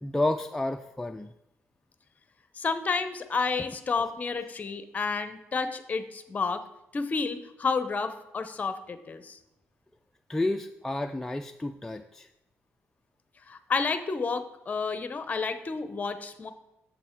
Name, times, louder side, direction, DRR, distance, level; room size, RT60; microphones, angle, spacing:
voice 1, 0.0-1.3 10.3-12.3, left 2 dB, 10° left, 5 dB, 0.3 m, -30 dB
voice 2, 2.6-6.6 6.9-9.4 13.5-16.5, left 4 dB, 30° left, 11 dB, 0.7 m, -30 dB
7.9 x 6.9 x 4.5 m, 0.89 s
cardioid pair, 120°, 5 cm